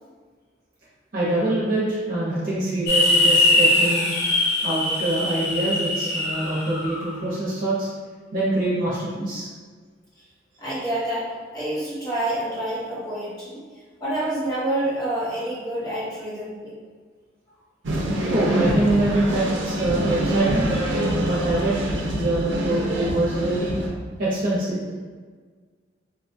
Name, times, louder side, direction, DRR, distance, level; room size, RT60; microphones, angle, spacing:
voice 1, 1.1-4.1 4.6-7.9 8.3-9.5 18.3-20.7 21.2-21.7 22.1-23.8 24.2-24.8, right 1 dB, 45° right, -9 dB, 0.8 m, -24 dB
sound 1, 2.9-7.0, left 2 dB, 55° left, 0.7 m, -21 dB
voice 2, 10.6-13.6 14.0-16.7, right 1 dB, 20° left, -10 dB, 0.9 m, -28 dB
sound 2, 17.8-23.9, right 1 dB, 75° right, 0.6 m, -25 dB
3.9 x 2.3 x 2.6 m, 1.5 s
head